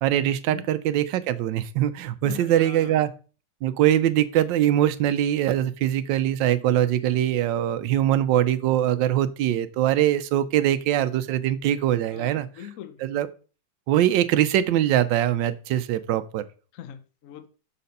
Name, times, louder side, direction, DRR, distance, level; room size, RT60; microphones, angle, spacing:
voice 1, 0.0-3.1 3.6-12.5 13.0-13.3 13.9-16.4, right 12 dB, 90° right, 1.3 m, -22 dB
voice 2, 2.2-3.1 12.1-13.0 16.7-17.5, left 10 dB, 60° left, 0.9 m, -41 dB
6.5 x 4.2 x 5.3 m
omnidirectional pair, 1.9 m